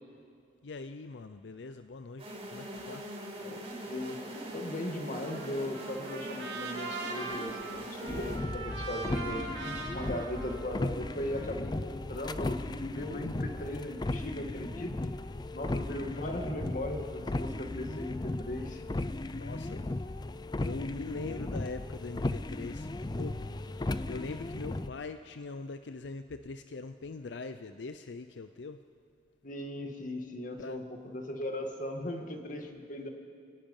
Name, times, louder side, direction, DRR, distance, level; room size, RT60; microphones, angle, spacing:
voice 1, 0.6-3.1 19.4-19.9 20.6-22.9 23.2-23.5 24.1-28.8 30.6-30.9, left 3 dB, 85° left, 10 dB, 0.6 m, -42 dB
sound 1, 2.2-8.4, right 1 dB, 35° right, 5.1 m, -42 dB
voice 2, 3.4-15.0 15.5-18.8 29.4-33.1, left 1 dB, 50° left, 4 dB, 1.9 m, -38 dB
Trumpet, 5.2-11.5, right 3 dB, 85° right, 3.2 m, -41 dB
sound 2, 8.1-24.9, left 2 dB, 25° left, 0.5 m, -36 dB
28.0 x 17.5 x 5.5 m, 2.3 s
head